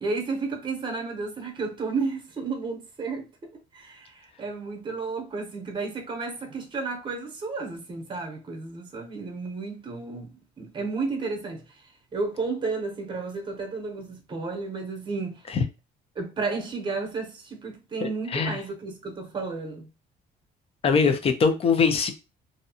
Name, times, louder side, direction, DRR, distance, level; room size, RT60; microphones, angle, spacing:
voice 1, 0.0-3.3 3.7-11.6 12.1-15.4 16.2-19.9, right 4 dB, 30° right, 0.9 m, -32 dB
voice 2, 18.0-18.6 20.8-22.1, left 5 dB, 35° left, 0.6 m, -22 dB
2.6 x 2.2 x 2.7 m
cardioid pair, 110°, 17 cm